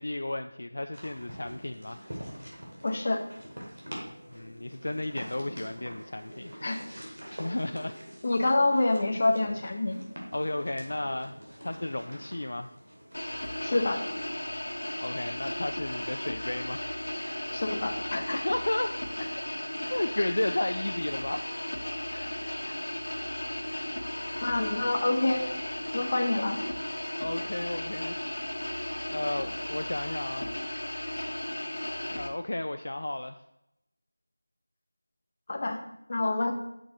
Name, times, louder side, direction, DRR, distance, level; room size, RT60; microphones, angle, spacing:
voice 1, 0.0-2.2 4.3-6.7 7.3-8.0 10.3-11.4 11.6-12.7 15.0-16.8 18.3-19.0 19.9-21.4 22.1-22.3 27.2-28.2 29.1-30.5 32.1-33.4, left 1 dB, 55° left, 7 dB, 0.3 m, -33 dB
sound 1, 0.9-14.2, equal, 70° right, 2.3 m, -45 dB
voice 2, 2.8-3.2 6.6-7.0 8.2-10.1 13.6-14.0 17.5-18.4 20.2-20.3 24.4-25.5 25.9-26.6 35.5-35.8 36.1-36.5, left 2 dB, 30° left, 3 dB, 0.7 m, -27 dB
sound 2, 13.1-32.3, left 1 dB, 75° left, 1.3 m, -35 dB
6.2 x 5.9 x 3.8 m, 0.84 s
figure-of-eight pair, 175°, 0 cm